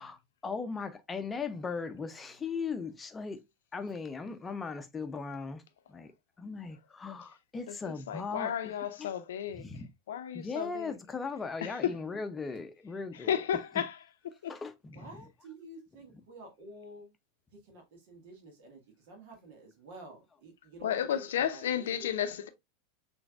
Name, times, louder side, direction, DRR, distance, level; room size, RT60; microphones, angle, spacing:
voice 1, 0.0-3.4 3.7-5.6 5.9-6.1 6.4-8.7 9.0-9.1 9.5-9.9 10.3-13.4 13.8-13.9 14.5-15.3, left 4 dB, 20° left, 0.7 m, -38 dB
voice 2, 7.7-9.7 10.1-11.0 11.6-11.9 13.2-14.0 14.4-14.5 20.8-22.5, left 9 dB, 65° left, 0.6 m, -33 dB
voice 3, 14.9-17.1 17.6-22.3, right 2 dB, 60° right, 1.7 m, -50 dB
5.9 x 3.4 x 2.4 m
figure-of-eight pair, 85°, 0 cm